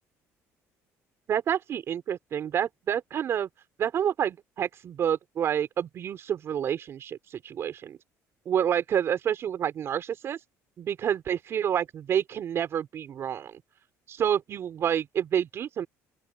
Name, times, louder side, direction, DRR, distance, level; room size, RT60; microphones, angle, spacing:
voice 1, 1.3-3.5 3.8-8.0 8.4-10.4 10.8-13.6 14.1-15.9, right 9 dB, 45° right, 4.8 m, -28 dB
open air
cardioid pair, 140°, 6 cm